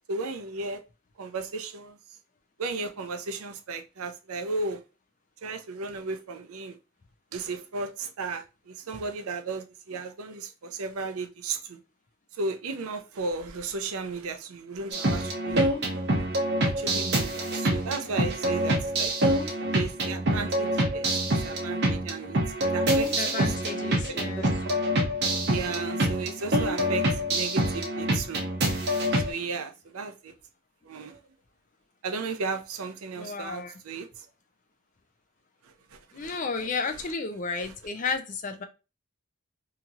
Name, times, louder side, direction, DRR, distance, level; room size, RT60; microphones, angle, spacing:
voice 1, 0.1-0.8 1.2-2.0 2.6-4.8 5.4-6.8 7.3-11.8 12.3-15.7 16.6-19.1 19.4-21.0 21.4-22.4 22.7-23.1 23.4-24.7 25.5-28.4 29.1-30.3 30.8-31.2 32.0-34.3 35.6-37.0 37.6-37.7, right 3 dB, 85° right, 0.5 m, -35 dB
sound 1, 14.9-29.3, right 1 dB, 50° right, 0.7 m, -26 dB
voice 2, 23.0-24.5 33.1-33.7 36.1-38.6, left 4 dB, 35° left, 0.4 m, -33 dB
2.9 x 2.8 x 2.4 m
head